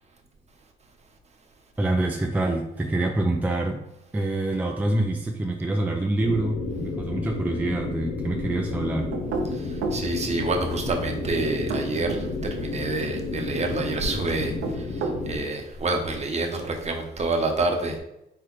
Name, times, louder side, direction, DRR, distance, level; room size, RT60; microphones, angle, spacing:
voice 1, 1.8-3.8 4.1-9.1, right 2 dB, 10° right, 1 dB, 0.4 m, -26 dB
sound 1, 6.2-15.4, left 3 dB, 70° left, 0.9 m, -32 dB
sound 2, 9.1-10.1 11.5-12.3 14.4-15.3, right 4 dB, 85° right, 0.6 m, -30 dB
voice 2, 9.5-18.0, right 2 dB, 35° right, 2 dB, 0.9 m, -28 dB
4.4 x 3.9 x 3.2 m, 0.86 s
cardioid pair, 90°, 20 cm